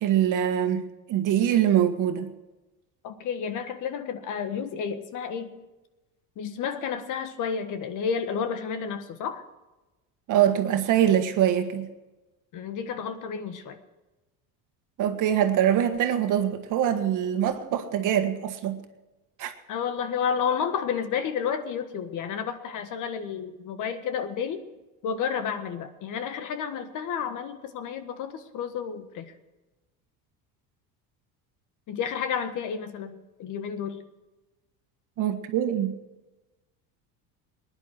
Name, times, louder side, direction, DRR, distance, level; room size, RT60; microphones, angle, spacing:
voice 1, 0.0-0.8 1.1-2.3 10.3-11.9 15.0-18.8 19.4-19.5 35.2-35.9, right 10 dB, 55° right, 7 dB, 1.6 m, -23 dB
voice 2, 3.0-5.5 6.4-9.4 12.5-13.8 19.7-24.6 25.0-29.3 31.9-34.0, left 7 dB, 55° left, 9 dB, 1.5 m, -31 dB
20.0 x 10.5 x 4.5 m, 1.1 s
cardioid pair, 135°, 38 cm